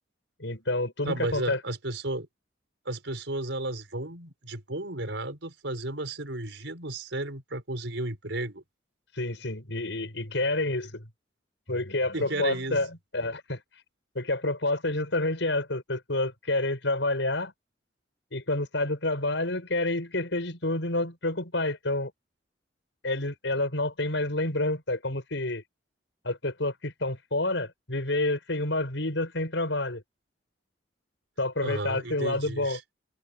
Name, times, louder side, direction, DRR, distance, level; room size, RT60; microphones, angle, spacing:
voice 1, 0.4-1.6 9.1-11.1 11.7-13.6 14.1-17.5 18.3-22.1 23.0-25.6 26.2-30.0 31.4-32.8, left 2 dB, 80° left, 5.9 m, -29 dB
voice 2, 1.0-2.3 2.8-8.6 12.1-12.8 31.6-32.8, right 2 dB, 80° right, 4.9 m, -33 dB
head